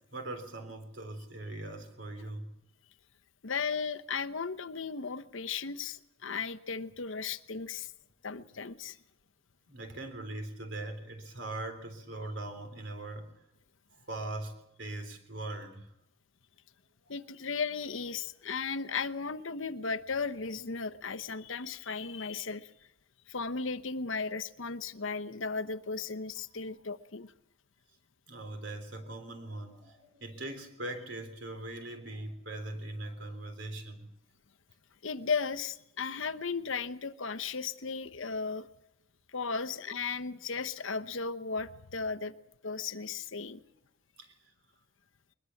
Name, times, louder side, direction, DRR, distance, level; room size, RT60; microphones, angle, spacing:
voice 1, 0.1-2.5 9.7-13.3 14.1-15.9 28.3-34.1 44.2-44.3, right 2 dB, 60° right, 6 dB, 3.7 m, -41 dB
voice 2, 3.4-7.9 8.2-9.0 17.1-22.7 23.3-27.3 35.0-38.7 39.3-42.3 42.6-43.6, left 5 dB, 70° left, 10 dB, 1.0 m, -35 dB
22.0 x 21.0 x 7.2 m, 0.84 s
head